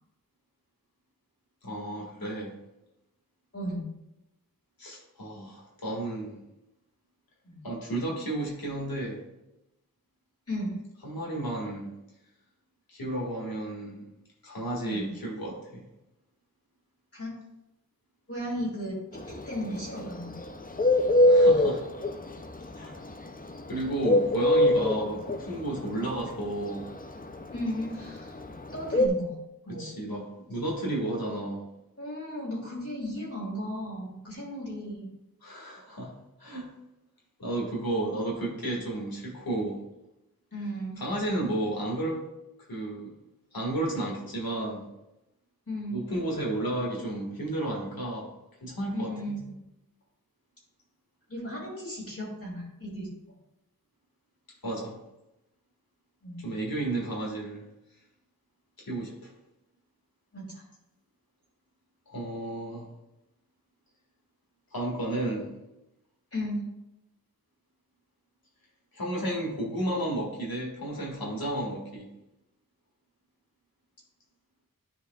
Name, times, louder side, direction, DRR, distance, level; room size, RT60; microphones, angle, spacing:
voice 1, 1.6-2.5 4.8-6.4 7.6-9.2 11.0-11.9 12.9-14.1 14.4-15.8 21.2-21.9 22.7-23.0 23.7-26.9 29.7-31.6 35.4-36.1 36.4-36.7 37.4-39.8 41.0-42.2 42.7-43.1 43.5-44.9 45.9-48.3 48.6-49.4 54.6-55.0 56.4-57.7 58.8-59.3 62.1-62.9 64.7-65.5 68.9-72.1, right 1 dB, 85° left, -2 dB, 2.0 m, -32 dB
voice 2, 3.5-3.8 7.5-7.6 10.5-10.8 14.8-15.1 17.1-17.3 18.3-19.0 19.5-20.3 27.5-28.3 28.7-29.3 29.7-29.9 32.0-35.1 40.5-41.0 45.7-46.1 48.9-49.5 51.3-53.1 56.2-56.4 60.3-60.6 66.3-66.6, equal, 40° left, -7 dB, 2.2 m, -35 dB
Bird, 19.2-29.1, left 1 dB, 25° left, 0.6 m, -22 dB
11.5 x 4.7 x 2.4 m, 0.91 s
wide cardioid pair, 65°, 35 cm